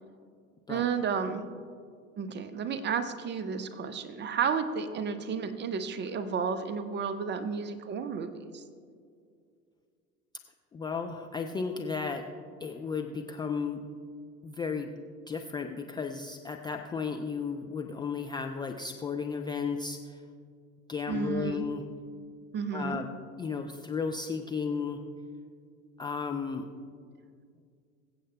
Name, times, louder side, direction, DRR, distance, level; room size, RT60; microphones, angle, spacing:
voice 1, 0.7-1.4 2.2-8.6 21.1-21.7 22.5-23.0, right 6 dB, 25° right, 10 dB, 0.7 m, -32 dB
voice 2, 10.7-12.2 12.6-13.8 14.4-15.0 15.3-20.2 20.9-21.8 22.7-23.1 23.4-25.0 26.0-26.7, left 5 dB, 10° left, 3 dB, 0.4 m, -34 dB
23.0 x 7.8 x 2.2 m, 2.2 s
figure-of-eight pair, 75°, 41 cm